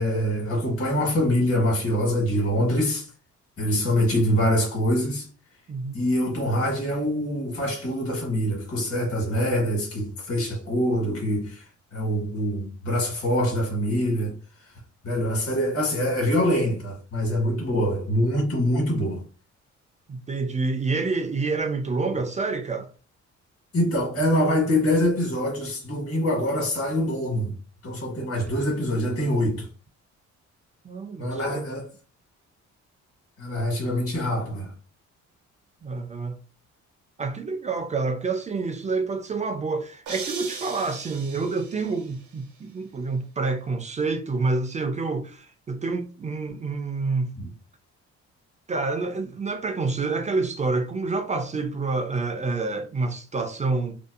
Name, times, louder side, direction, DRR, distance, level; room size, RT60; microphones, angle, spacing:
voice 1, 0.0-3.1 3.6-5.3 5.9-11.6 11.9-14.4 15.0-19.2 23.7-27.5 27.8-29.7 31.2-31.8 33.4-34.7 47.4-47.5, equal, 50° left, 1.3 m, -24 dB
voice 2, 5.7-6.0 20.1-22.9 28.2-28.3 30.8-31.7 35.8-36.4 37.2-47.3 48.7-54.0, right 3 dB, 25° right, 0.4 m, -28 dB
sound 1, 40.1-42.1, right 5 dB, 90° right, 0.7 m, -38 dB
2.6 x 2.2 x 2.4 m
cardioid pair, 90°, 30 cm